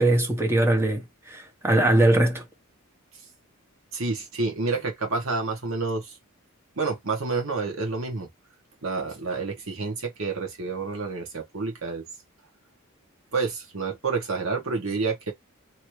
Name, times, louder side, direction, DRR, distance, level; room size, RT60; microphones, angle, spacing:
voice 1, 0.0-2.4, right 1 dB, 10° right, 0.9 m, -21 dB
voice 2, 3.9-6.2 6.8-8.3 8.8-12.0 13.3-15.3, right 4 dB, 65° right, 1.2 m, -29 dB
3.0 x 2.7 x 3.1 m
head